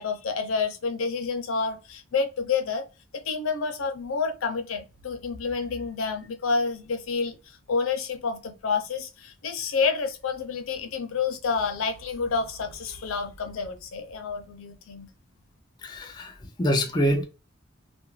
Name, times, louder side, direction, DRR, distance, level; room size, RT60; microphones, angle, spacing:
voice 1, 0.0-2.8 3.3-7.4 7.7-15.1, left 5 dB, 85° left, 0.5 m, -29 dB
voice 2, 15.8-17.2, equal, 20° left, 0.4 m, -25 dB
2.3 x 2.1 x 3.0 m
head